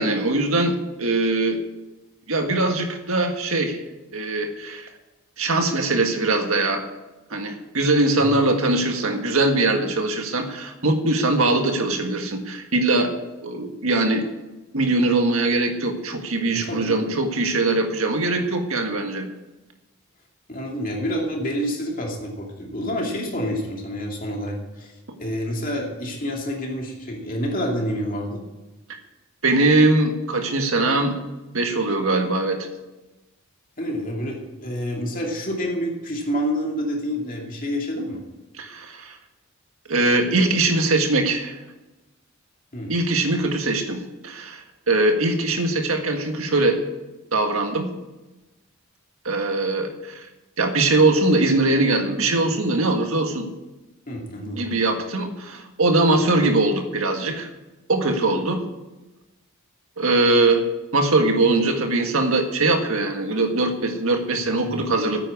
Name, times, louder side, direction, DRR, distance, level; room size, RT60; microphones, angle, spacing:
voice 1, 0.0-1.6 2.3-3.8 4.1-4.9 5.4-6.9 7.3-13.1 13.4-14.2 14.7-19.3 29.4-31.2 31.5-32.7 38.6-39.2 39.9-41.6 42.9-46.8 47.3-47.9 49.3-50.3 50.6-53.5 54.5-57.5 57.9-58.6 60.0-60.6 60.9-65.2, right 2 dB, 70° right, 4 dB, 1.7 m, -21 dB
voice 2, 16.5-17.0 20.5-24.9 25.2-28.4 33.8-38.2 42.7-42.9 54.1-54.7 64.6-64.8, equal, 40° left, -1 dB, 2.5 m, -28 dB
9.8 x 9.0 x 8.5 m, 1.1 s
head